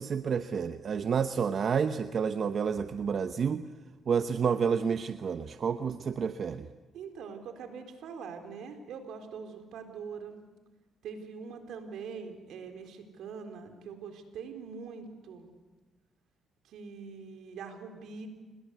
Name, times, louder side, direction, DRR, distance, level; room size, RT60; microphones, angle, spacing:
voice 1, 0.0-3.6 4.1-6.7, right 6 dB, 50° right, 10 dB, 0.9 m, -29 dB
voice 2, 6.9-10.4 11.0-15.5 16.6-18.3, right 5 dB, 80° right, 5 dB, 4.1 m, -43 dB
28.5 x 21.0 x 8.2 m, 1.2 s
cardioid pair, 90°, 0 cm